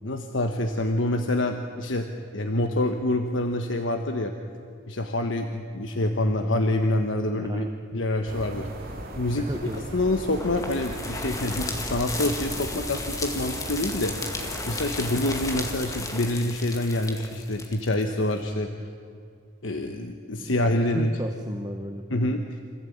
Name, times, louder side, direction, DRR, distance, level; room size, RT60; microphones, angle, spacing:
voice 1, 0.0-2.1 2.3-4.3 4.9-7.7 7.9-8.7 9.2-9.5 9.9-14.2 14.7-18.7 19.6-21.1 22.1-22.6, left 1 dB, 75° left, 4 dB, 1.2 m, -26 dB
voice 2, 7.4-7.7 9.4-9.8 20.4-20.6 20.9-22.4, right 1 dB, 20° right, 5 dB, 1.0 m, -34 dB
sound 1, 8.3-16.0, right 1 dB, 50° right, 2.3 m, -38 dB
sound 2, 9.7-18.5, left 3 dB, 15° left, 1.9 m, -35 dB
26.0 x 15.5 x 8.7 m, 2.3 s
head